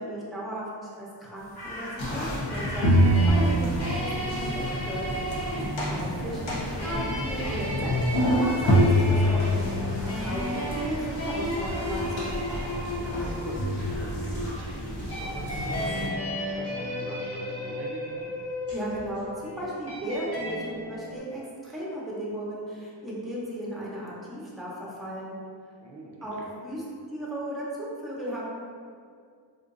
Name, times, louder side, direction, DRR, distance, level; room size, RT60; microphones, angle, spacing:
voice 1, 0.0-5.1 5.9-7.9 8.4-12.5 18.7-25.4 26.2-26.8 27.1-28.4, right 1 dB, ahead, -6 dB, 0.7 m, -35 dB
sound 1, 1.4-7.0, left 1 dB, 55° left, 0.8 m, -44 dB
sound 2, 2.0-16.1, equal, 85° left, 0.8 m, -27 dB
sound 3, 2.4-21.2, equal, 30° left, 0.9 m, -34 dB
voice 2, 5.7-6.1 13.1-18.3 25.8-26.5, right 2 dB, 65° right, -1 dB, 0.5 m, -43 dB
3.7 x 2.5 x 2.5 m, 2.2 s
wide cardioid pair, 105°, 44 cm